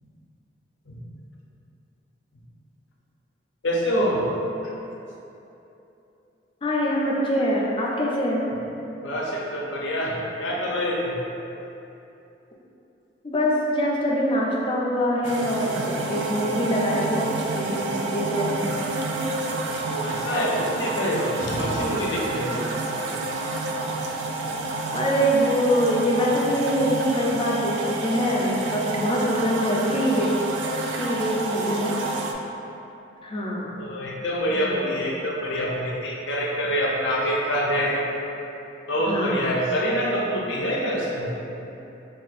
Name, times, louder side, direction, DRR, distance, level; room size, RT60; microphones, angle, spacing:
voice 1, 3.6-4.2 9.0-11.2 19.9-22.6 31.5-31.8 33.8-38.0 38.9-41.3, equal, 80° left, -3 dB, 0.6 m, -26 dB
voice 2, 6.6-8.5 13.2-18.7 24.9-30.3 31.0-32.1 33.2-33.7 34.5-34.8 39.1-39.6, equal, 30° left, -3 dB, 0.4 m, -24 dB
sound 1, 15.2-32.3, right 2 dB, 70° right, 0.3 m, -29 dB
4.2 x 2.4 x 2.4 m, 2.9 s
head